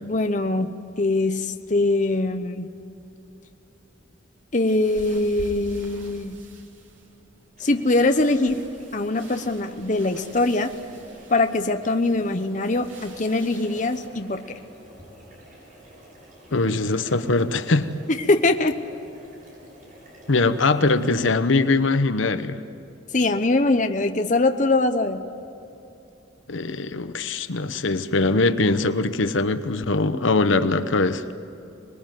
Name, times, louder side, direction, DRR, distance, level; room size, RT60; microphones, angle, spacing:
voice 1, 0.0-2.7 4.5-6.4 7.6-8.6 8.9-10.8 11.3-14.4 18.1-18.8 23.1-25.2, left 2 dB, 40° left, 7 dB, 0.9 m, -22 dB
sound 1, 4.7-14.1, right 1 dB, 90° right, 3.3 m, -47 dB
sound 2, 7.6-21.2, equal, 45° right, 7.6 m, -49 dB
voice 2, 16.5-17.9 20.3-22.6 26.5-31.2, left 3 dB, 85° left, 11 dB, 1.0 m, -22 dB
25.5 x 20.5 x 9.2 m, 2.8 s
head